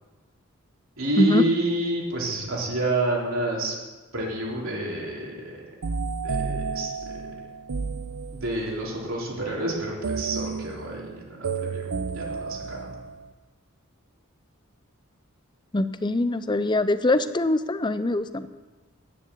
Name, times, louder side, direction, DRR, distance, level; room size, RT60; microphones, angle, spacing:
voice 1, 1.0-3.8 4.1-5.5 6.2-7.2 8.3-12.9, right 2 dB, 65° right, -3 dB, 4.0 m, -29 dB
sound 1, 5.8-8.8 10.0-13.3, right 4 dB, 85° right, 0.7 m, -32 dB
voice 2, 15.7-18.5, left 2 dB, 20° left, 12 dB, 0.5 m, -23 dB
10.5 x 10.0 x 8.0 m, 1.3 s
head